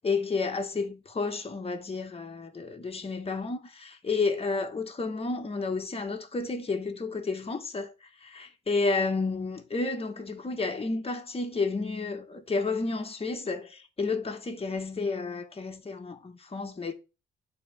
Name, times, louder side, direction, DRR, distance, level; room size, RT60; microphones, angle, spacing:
voice 1, 0.0-16.9, left 4 dB, 30° left, 1.9 m, -31 dB
8.7 x 4.3 x 6.7 m
cardioid pair, 90°, 20 cm